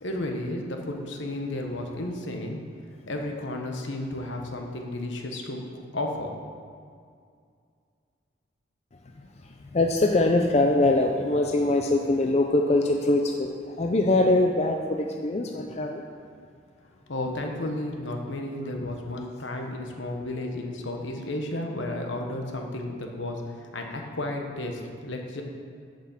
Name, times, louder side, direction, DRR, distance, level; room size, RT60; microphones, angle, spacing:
voice 1, 0.0-2.6 3.1-5.6 5.9-6.4 17.1-23.4 23.7-25.4, left 1 dB, 75° left, 2 dB, 1.2 m, -32 dB
voice 2, 8.9-16.1, left 2 dB, 35° left, 2 dB, 0.4 m, -23 dB
7.3 x 6.1 x 7.2 m, 2.2 s
head